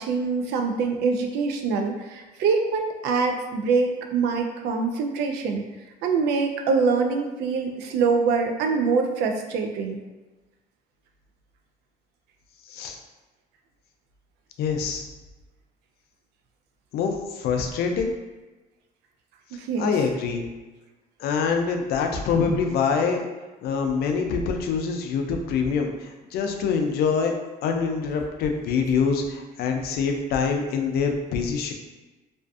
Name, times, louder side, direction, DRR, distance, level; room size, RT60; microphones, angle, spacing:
voice 1, 0.0-5.6 6.0-10.0 19.5-19.9, right 4 dB, 80° right, 4 dB, 0.4 m, -24 dB
voice 2, 14.6-15.0 16.9-18.1 19.8-20.4 21.2-23.3 23.6-27.3 27.6-31.7, left 5 dB, 70° left, 4 dB, 0.4 m, -25 dB
2.4 x 2.4 x 2.3 m, 1.2 s
cardioid pair, 110°, 17 cm